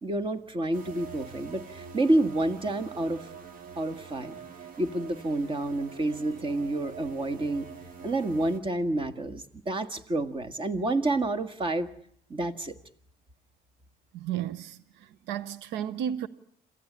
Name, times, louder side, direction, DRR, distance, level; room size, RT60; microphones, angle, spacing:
voice 1, 0.0-3.3 3.8-4.4 4.8-7.7 8.0-11.9 12.3-12.7, right 2 dB, 30° right, 1.8 m, -29 dB
sound 1, 0.7-8.6, right 6 dB, 50° right, 2.7 m, -45 dB
voice 2, 14.1-16.3, right 10 dB, 85° right, 0.9 m, -33 dB
27.5 x 15.0 x 9.8 m
cardioid pair, 115°, 18 cm